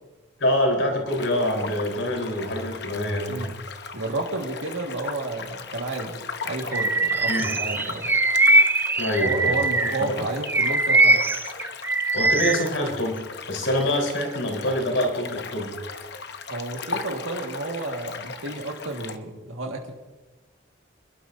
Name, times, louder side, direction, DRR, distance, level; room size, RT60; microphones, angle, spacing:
voice 1, 0.4-3.4 7.3-7.5 9.0-9.6 9.8-10.3 12.1-15.7, left 1 dB, 75° left, 1 dB, 3.9 m, -25 dB
sound 1, 1.1-19.2, left 5 dB, 55° left, 0.8 m, -37 dB
voice 2, 3.9-8.1 9.2-11.2 16.5-19.9, right 2 dB, 85° right, 0 dB, 1.7 m, -31 dB
Bird vocalization bird call bird song, 6.7-10.0 10.5-12.7, right 2 dB, 10° right, 0.3 m, -21 dB
27.5 x 12.0 x 2.6 m, 1.2 s
head